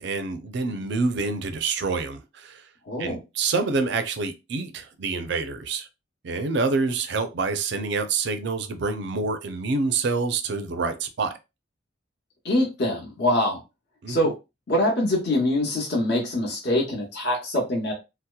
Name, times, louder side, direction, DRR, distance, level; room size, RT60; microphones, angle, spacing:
voice 1, 0.0-2.6 3.0-5.9 6.2-11.3 14.0-14.2, right 4 dB, 60° right, 0.4 m, -27 dB
voice 2, 2.9-3.2 12.4-13.6 14.1-14.3 14.7-17.9, left 1 dB, 60° left, 0.9 m, -24 dB
2.7 x 2.0 x 2.2 m
head